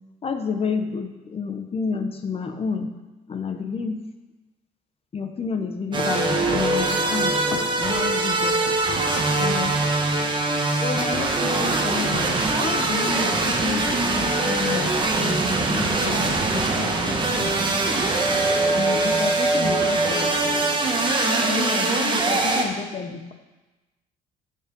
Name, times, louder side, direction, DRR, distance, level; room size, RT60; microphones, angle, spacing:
voice 1, 0.2-2.9 3.3-4.0 5.1-8.8 9.4-9.8 10.8-17.7 18.7-20.3 21.4-23.3, left 5 dB, 35° left, 6 dB, 1.1 m, -30 dB
sound 1, 5.9-22.7, right 2 dB, 30° right, 1.5 m, -22 dB
12.5 x 5.7 x 5.4 m, 1.1 s
cardioid pair, 110°, 17 cm